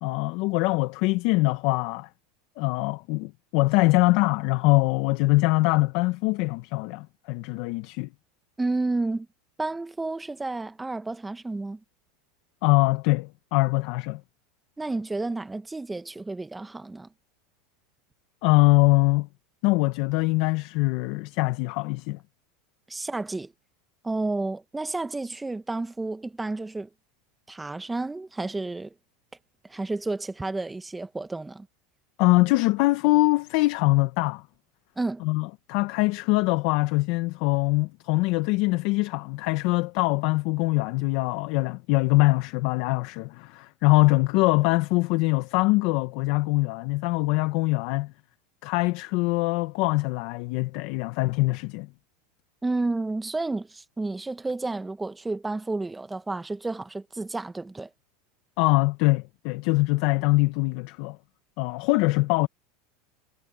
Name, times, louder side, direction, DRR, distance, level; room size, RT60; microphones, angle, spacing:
voice 1, 0.0-2.1 2.6-8.1 12.6-14.2 18.4-19.3 19.6-22.2 32.2-34.4 35.2-48.1 48.6-51.9 58.6-61.2 61.6-62.5, left 22 dB, 60° left, 1.3 m, -23 dB
voice 2, 8.6-9.3 9.6-11.8 14.8-17.1 22.9-23.5 24.0-26.9 27.5-28.9 29.7-31.7 35.0-35.2 52.6-57.9, right 2 dB, 10° right, 1.2 m, -31 dB
supercardioid pair, 120°, 0 cm